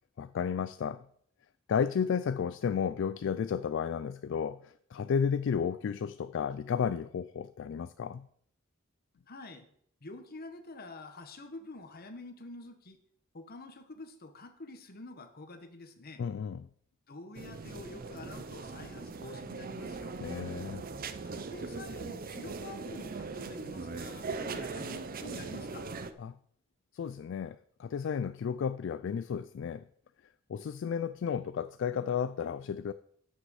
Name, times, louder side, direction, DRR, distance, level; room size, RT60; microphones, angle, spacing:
voice 1, 0.2-1.0 1.7-8.3 16.2-16.7 20.2-20.8 26.2-26.4 26.9-29.8 30.5-32.9, left 7 dB, 65° left, 0.3 m, -33 dB
voice 2, 9.3-9.7 10.0-13.0 13.3-16.2 17.1-20.2 21.2-25.9, left 2 dB, 50° left, 1.2 m, -47 dB
sound 1, 17.3-26.1, right 4 dB, 45° right, 0.6 m, -40 dB
7.5 x 6.3 x 6.3 m
head